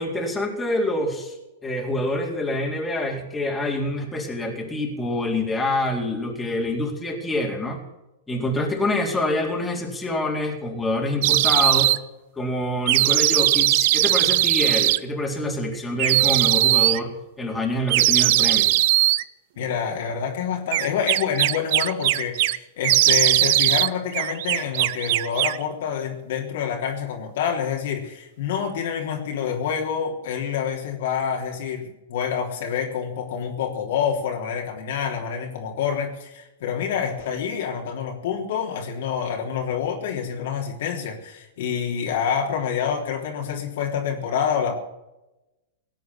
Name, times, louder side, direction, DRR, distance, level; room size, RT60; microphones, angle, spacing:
voice 1, 0.0-1.3 1.6-7.8 8.3-11.9 12.4-18.7, left 1 dB, 10° left, 0 dB, 3.9 m, -26 dB
sound 1, 11.2-12.0 12.9-15.0 16.0-17.0 17.9-19.2 20.7-22.6 22.8-23.9 24.1-25.6, right 17 dB, 55° right, 0.6 m, -19 dB
voice 2, 19.6-44.7, left 7 dB, 65° left, 1 dB, 3.5 m, -27 dB
17.5 x 8.5 x 8.6 m, 0.96 s
hypercardioid pair, 115°, 0 cm